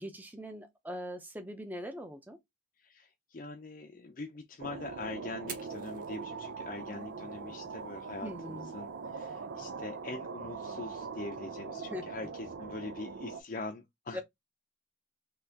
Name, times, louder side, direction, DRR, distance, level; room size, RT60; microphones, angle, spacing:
voice 1, 0.0-2.4 8.2-8.7 11.9-12.1 14.1-14.2, equal, 10° right, 0.6 m, -41 dB
voice 2, 2.8-14.2, left 3 dB, 45° left, 0.5 m, -43 dB
sound 1, 4.6-13.4, right 5 dB, 85° right, 0.5 m, -42 dB
Fire, 5.3-13.3, right 8 dB, 45° right, 0.7 m, -55 dB
4.1 x 2.9 x 2.7 m
head